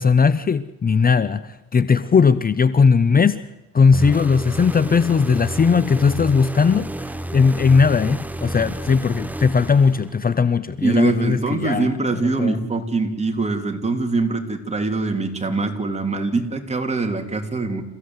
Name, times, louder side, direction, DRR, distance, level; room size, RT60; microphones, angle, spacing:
voice 1, 0.0-3.4 3.7-11.9 12.2-12.6, left 5 dB, 30° left, 0.7 m, -18 dB
sound 1, 3.9-10.4, right 1 dB, 5° right, 1.0 m, -31 dB
voice 2, 10.8-17.8, right 3 dB, 20° right, 3.3 m, -23 dB
28.5 x 15.5 x 8.0 m
cardioid pair, 90°, 30 cm